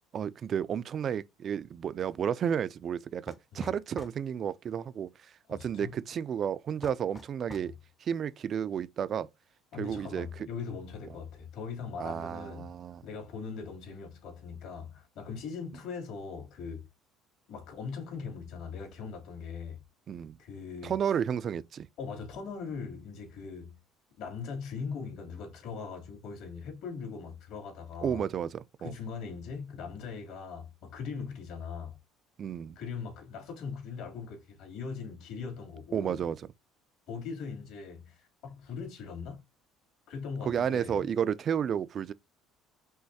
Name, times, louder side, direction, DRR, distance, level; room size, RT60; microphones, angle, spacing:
voice 1, 0.1-5.1 5.5-7.7 8.0-9.3 9.8-10.3 12.0-13.0 20.1-20.4 20.8-21.9 28.0-28.9 32.4-32.8 35.9-36.4 40.5-42.1, right 8 dB, 35° right, 0.3 m, -32 dB
sound 1, 3.3-4.2 6.8-7.7, left 2 dB, 15° left, 0.6 m, -46 dB
voice 2, 5.5-5.9 7.6-7.7 9.7-12.7 13.0-16.9 17.5-19.8 20.4-21.0 22.0-23.8 24.2-28.2 28.8-32.0 32.7-36.2 37.1-39.4 40.1-41.1, left 5 dB, 65° left, 2.7 m, -40 dB
5.6 x 3.0 x 2.7 m
cardioid pair, 145°, 0 cm